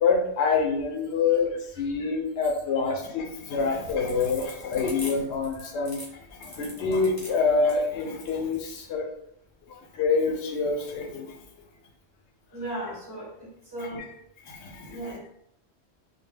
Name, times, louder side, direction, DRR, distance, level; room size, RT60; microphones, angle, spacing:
voice 1, 0.0-9.1 9.7-11.4 14.0-14.1 14.5-15.0, left 4 dB, 80° left, 1 dB, 0.8 m, -26 dB
sound 1, 3.8-8.8, left 1 dB, 15° left, 0.6 m, -43 dB
voice 2, 12.5-14.1 14.9-15.3, right 1 dB, 30° right, -4 dB, 0.5 m, -36 dB
2.2 x 2.1 x 3.3 m, 0.71 s
omnidirectional pair, 1.1 m